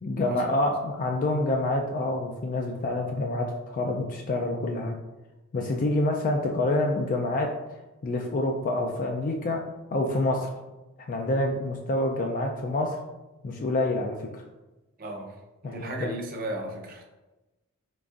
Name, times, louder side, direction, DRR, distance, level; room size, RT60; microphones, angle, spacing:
voice 1, 0.0-4.9 5.5-7.5 8.0-9.6 9.9-10.5 11.1-13.0 13.4-14.4 15.6-16.1, left 2 dB, 40° left, 1 dB, 0.3 m, -27 dB
voice 2, 15.0-15.3 15.6-17.0, right 1 dB, 45° right, 1 dB, 0.6 m, -35 dB
3.8 x 3.4 x 2.4 m, 1.1 s
head